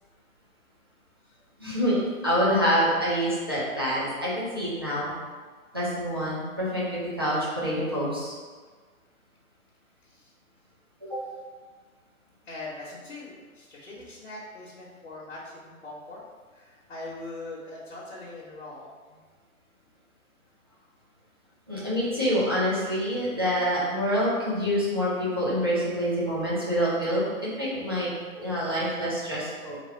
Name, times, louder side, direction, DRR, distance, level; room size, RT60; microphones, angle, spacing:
voice 1, 1.6-5.1 5.7-8.3 11.0-11.2 21.7-29.8, equal, 15° right, -9 dB, 0.5 m, -26 dB
voice 2, 12.5-16.2 16.5-19.2, left 2 dB, 50° left, -6 dB, 1.2 m, -42 dB
3.5 x 3.3 x 4.4 m, 1.5 s
hypercardioid pair, 160°, 43 cm